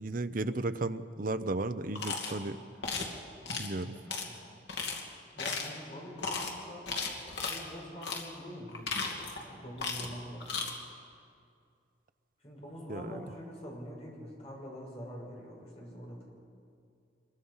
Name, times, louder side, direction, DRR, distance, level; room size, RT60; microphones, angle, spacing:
voice 1, 0.0-2.6 3.5-3.9 12.9-13.2, right 2 dB, 50° right, 11 dB, 0.7 m, -34 dB
sound 1, 2.0-2.3 2.8-3.1 3.5-3.7 4.1-4.2 4.7-5.0 5.4-5.8 6.2-6.5 6.9-7.6 8.0-8.3 8.7-9.4 9.8-10.1 10.4-10.7, left 4 dB, 80° left, 2.7 m, -35 dB
voice 2, 3.9-4.4 5.3-6.9 7.5-8.9 9.4-10.5 12.4-16.2, equal, 35° left, -3 dB, 6.0 m, -45 dB
25.5 x 22.5 x 5.6 m, 2.4 s
head